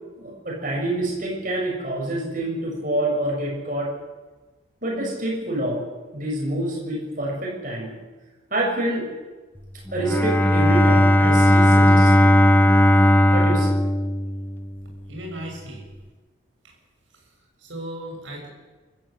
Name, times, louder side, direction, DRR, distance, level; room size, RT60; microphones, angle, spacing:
voice 1, 0.1-3.9 4.8-5.8 6.1-7.9 8.5-9.1 9.9-12.4 13.3-13.8, right 1 dB, 40° right, -2 dB, 7.3 m, -27 dB
Bowed string instrument, 9.9-14.8, left 1 dB, 10° left, 0.7 m, -16 dB
voice 2, 15.1-15.9 17.1-17.3 17.6-18.5, right 1 dB, 70° right, 0 dB, 7.3 m, -36 dB
25.0 x 14.0 x 8.0 m, 1.3 s
head